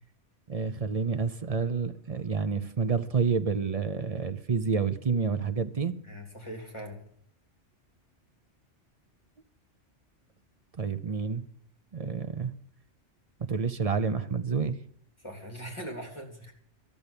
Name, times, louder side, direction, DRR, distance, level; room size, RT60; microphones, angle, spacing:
voice 1, 0.5-5.9 10.8-11.4 11.9-12.5 13.5-14.8, right 5 dB, 35° right, 10 dB, 0.7 m, -29 dB
voice 2, 6.0-7.0 15.2-16.5, equal, 25° left, 2 dB, 3.2 m, -41 dB
12.0 x 7.1 x 9.8 m, 0.65 s
omnidirectional pair, 1.2 m